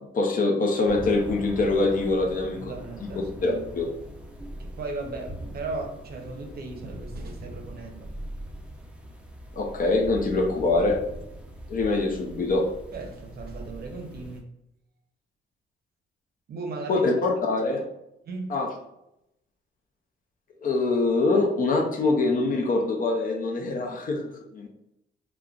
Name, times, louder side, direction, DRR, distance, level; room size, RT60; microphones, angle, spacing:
voice 1, 0.1-2.7 3.4-3.9 9.6-11.0 11.7-12.7 16.9-17.8 18.5-18.7 20.6-24.7, left 3 dB, 45° left, 2 dB, 0.6 m, -24 dB
sound 1, 0.8-14.4, equal, 5° right, 0.6 m, -41 dB
voice 2, 2.6-3.7 4.6-8.1 12.9-14.5 16.5-17.1 18.2-18.6, right 3 dB, 50° right, 3 dB, 0.7 m, -37 dB
3.6 x 2.2 x 2.3 m, 0.83 s
cardioid pair, 90°, 20 cm